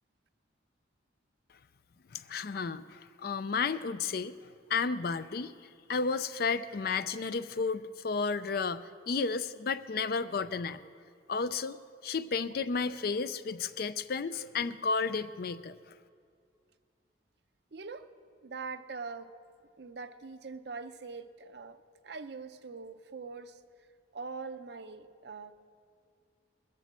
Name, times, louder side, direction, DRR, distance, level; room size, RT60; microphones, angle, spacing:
voice 1, 2.1-4.4 4.7-5.5 5.9-10.8 11.3-11.8 12.0-15.7, left 5 dB, 50° left, 13 dB, 0.4 m, -32 dB
voice 2, 17.7-18.1 18.4-19.3 19.8-23.6 24.1-25.6, right 4 dB, 60° right, 10 dB, 0.6 m, -43 dB
21.0 x 7.6 x 7.4 m, 2.3 s
head